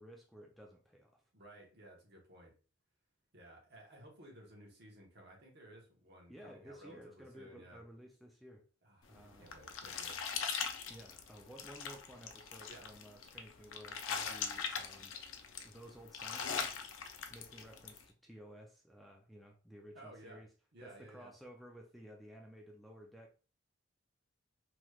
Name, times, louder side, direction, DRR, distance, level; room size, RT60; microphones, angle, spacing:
voice 1, 0.0-1.2 6.3-8.7 9.1-9.5 10.8-15.2 15.6-16.8 17.3-20.5 20.8-23.3, equal, ahead, 0.3 m, -55 dB
voice 2, 1.3-2.5 3.3-7.8 8.8-10.2 12.7-12.9 14.2-14.3 19.9-20.4 20.7-21.3, right 1 dB, 60° right, 1.1 m, -56 dB
sound 1, 9.1-18.0, left 6 dB, 80° left, 0.5 m, -41 dB
3.3 x 3.0 x 2.3 m
head